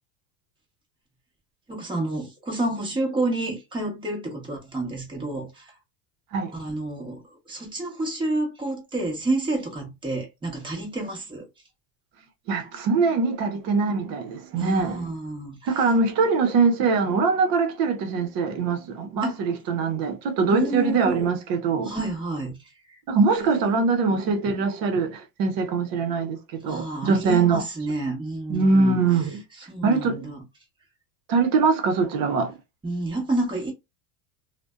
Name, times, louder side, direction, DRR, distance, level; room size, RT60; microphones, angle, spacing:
voice 1, 1.7-5.8 6.5-11.5 14.6-15.9 19.2-19.4 20.5-21.3 21.8-23.0 26.6-29.0 29.5-30.4 32.8-33.7, right 2 dB, 10° right, 0.9 m, -29 dB
voice 2, 12.5-15.0 15.7-21.9 23.1-27.6 28.5-29.4 29.8-30.3 31.3-32.6, right 4 dB, 50° right, 0.8 m, -23 dB
2.5 x 2.2 x 2.3 m
supercardioid pair, 130°, 45 cm